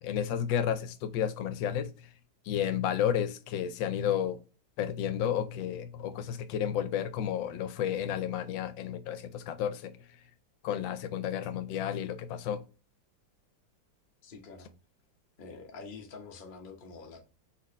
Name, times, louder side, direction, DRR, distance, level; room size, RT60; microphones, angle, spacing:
voice 1, 0.0-2.1 2.4-4.4 4.8-10.1 10.6-12.6, left 9 dB, 85° left, 1.3 m, -32 dB
voice 2, 14.2-14.7 15.4-17.2, left 4 dB, 40° left, 0.8 m, -46 dB
4.2 x 4.0 x 3.1 m
omnidirectional pair, 2.0 m